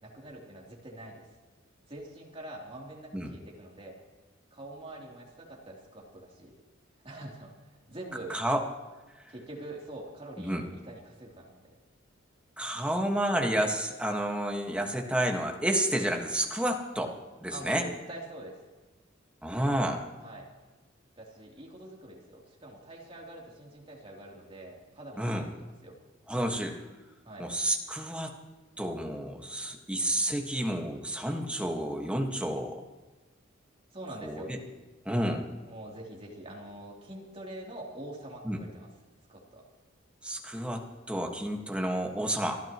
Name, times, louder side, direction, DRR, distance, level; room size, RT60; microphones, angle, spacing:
voice 1, 0.0-1.3 1.9-4.0 4.5-6.5 7.0-7.5 7.9-8.4 9.3-11.8 17.5-18.6 19.5-19.7 20.2-20.4 21.2-26.0 27.2-27.5 33.9-34.5 35.6-38.9 39.3-39.6, right 1 dB, 30° right, -2 dB, 3.3 m, -45 dB
voice 2, 8.3-8.6 10.4-10.6 12.6-17.1 17.4-17.8 19.4-20.1 25.2-25.5 26.3-26.8 27.4-28.3 28.8-32.8 34.2-34.6 35.0-35.4 38.4-38.6 40.2-42.6, right 1 dB, 5° right, 2 dB, 1.6 m, -30 dB
27.0 x 13.0 x 3.1 m, 1.2 s
head